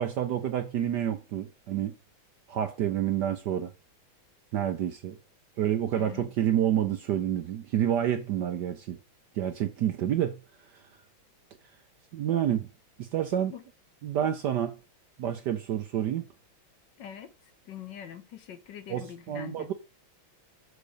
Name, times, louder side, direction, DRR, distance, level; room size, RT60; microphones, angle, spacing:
voice 1, 0.0-2.0 2.5-3.7 4.5-5.2 5.6-9.0 9.4-10.4 12.1-12.7 13.0-13.5 14.0-14.7 15.2-16.3 18.9-19.7, right 10 dB, 65° right, 1.1 m, -28 dB
voice 2, 6.0-6.3 13.5-13.6 17.0-19.7, left 9 dB, 65° left, 1.2 m, -44 dB
6.5 x 6.0 x 6.6 m
omnidirectional pair, 2.4 m